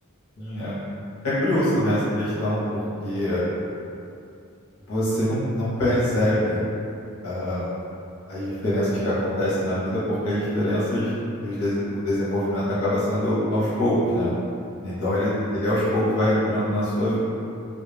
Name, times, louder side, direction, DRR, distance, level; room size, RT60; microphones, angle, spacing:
voice 1, 0.4-0.8 1.2-3.4 4.9-6.6 7.2-7.7 8.3-11.1 11.4-14.3 14.8-17.2, left 1 dB, 75° left, -10 dB, 0.8 m, -24 dB
2.3 x 2.1 x 3.2 m, 2.6 s
head